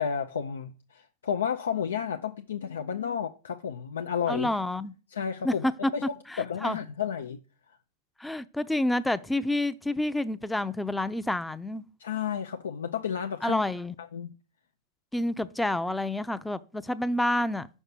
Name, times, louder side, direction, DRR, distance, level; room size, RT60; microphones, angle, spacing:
voice 1, 0.0-4.5 5.1-5.7 5.9-7.4 12.0-13.6 14.1-14.3, left 7 dB, 85° left, 0.5 m, -31 dB
voice 2, 4.3-4.9 5.4-6.8 8.2-11.8 13.4-13.9 15.1-17.7, left 1 dB, 5° left, 0.5 m, -29 dB
5.7 x 5.4 x 6.0 m
hypercardioid pair, 110°, 0 cm